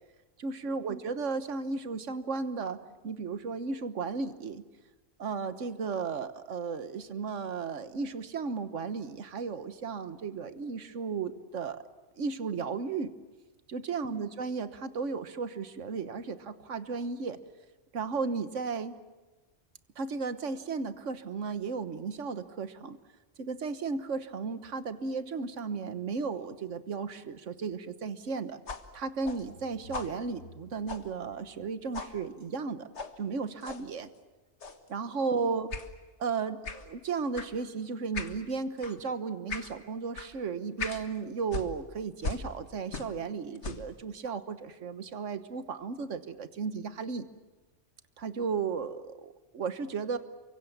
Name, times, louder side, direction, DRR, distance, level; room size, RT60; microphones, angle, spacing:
voice 1, 0.4-4.6 5.2-11.8 12.2-13.1 13.7-17.4 17.9-19.0 20.0-23.0 23.4-28.6 28.9-32.9 33.2-34.1 34.9-35.7 36.2-47.2 48.2-50.2, right 5 dB, 85° right, 11 dB, 1.6 m, -34 dB
sound 1, 28.7-31.7 31.9-32.2 32.9-33.2 33.6-33.9 34.6-34.9 35.7-35.9 36.6-36.9 37.3-37.5 38.1-38.4 38.8-39.0 39.5-39.7 40.2-40.3 40.8-41.1 41.5-43.3 43.6-43.9, left 4 dB, 70° left, 1.9 m, -39 dB
29.0 x 24.5 x 7.2 m, 1.2 s
omnidirectional pair, 1.2 m